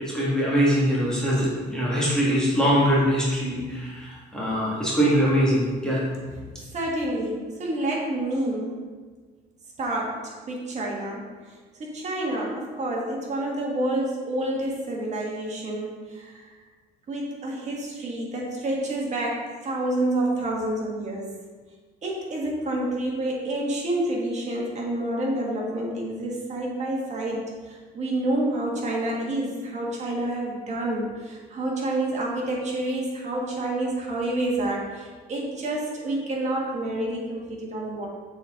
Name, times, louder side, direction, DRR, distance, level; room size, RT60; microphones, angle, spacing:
voice 1, 0.0-6.0, equal, 5° left, -7 dB, 1.9 m, -22 dB
voice 2, 6.7-8.8 9.8-11.3 11.8-16.4 17.1-21.4 22.0-38.1, right 1 dB, 45° right, -2 dB, 1.6 m, -28 dB
6.9 x 4.1 x 3.8 m, 1.5 s
cardioid pair, 110°, 17 cm